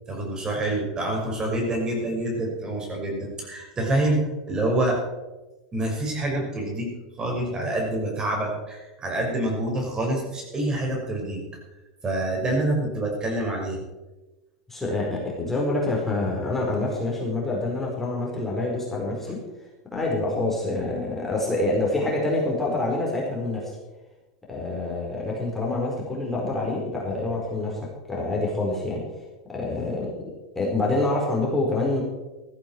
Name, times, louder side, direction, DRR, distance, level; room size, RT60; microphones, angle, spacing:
voice 1, 0.1-5.0 5.7-6.9 7.2-11.4 12.0-13.8, right 1 dB, 25° right, 0 dB, 5.7 m, -26 dB
voice 2, 14.7-19.4 19.9-23.8 24.5-27.8 28.1-29.0 29.5-32.0, left 2 dB, 10° left, -3 dB, 4.5 m, -26 dB
15.0 x 14.0 x 4.7 m, 1.1 s
hypercardioid pair, 95°, 3 cm